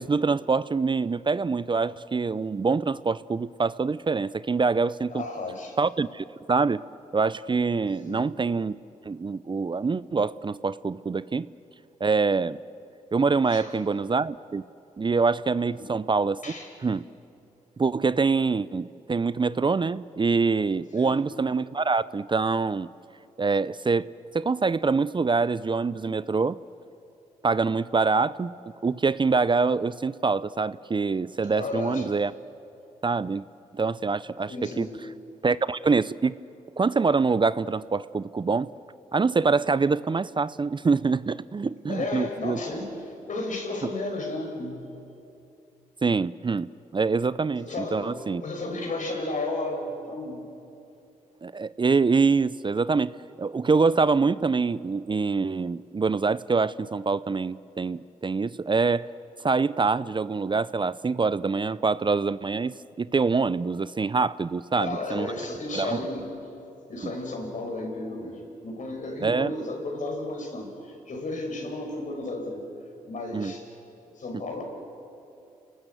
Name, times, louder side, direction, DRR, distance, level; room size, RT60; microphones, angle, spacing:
voice 1, 0.0-5.2 5.8-6.8 7.1-8.7 9.0-11.5 12.0-12.6 13.1-14.6 15.0-16.4 16.8-17.0 17.8-22.9 23.4-26.6 27.4-28.5 28.8-32.3 33.0-33.4 33.7-34.9 35.4-36.4 36.8-38.7 39.1-42.6 46.0-48.4 51.4-59.1 59.4-65.3 65.7-66.0 67.0-67.1 69.2-69.5 73.3-73.5, right 4 dB, 35° right, 18 dB, 0.6 m, -25 dB
voice 2, 5.1-5.8 8.0-8.3 13.4-13.7 15.7-15.9 16.4-16.7 20.9-21.1 31.5-32.1 34.5-34.9 41.9-44.8 47.6-50.5 64.8-66.3 66.9-72.6 73.1-73.7 74.1-74.6, left 2 dB, 60° left, 2 dB, 5.8 m, -33 dB
29.5 x 19.0 x 8.0 m, 2.7 s
supercardioid pair, 45°, 15 cm